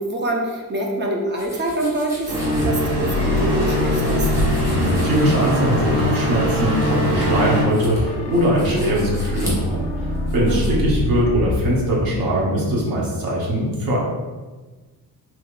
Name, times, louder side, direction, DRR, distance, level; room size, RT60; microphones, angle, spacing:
voice 1, 0.0-4.3 10.5-10.8, right 1 dB, 30° right, 0 dB, 0.4 m, -25 dB
sound 1, 1.4-10.7, equal, 10° right, 0.7 m, -36 dB
sound 2, 2.3-7.6, equal, 85° right, 1.3 m, -22 dB
sound 3, 2.9-12.6, left 1 dB, 50° left, 0.5 m, -27 dB
voice 2, 4.6-9.9 10.3-14.0, equal, 65° right, -4 dB, 1.0 m, -21 dB
3.4 x 2.8 x 2.4 m, 1.3 s
cardioid pair, 170°, 38 cm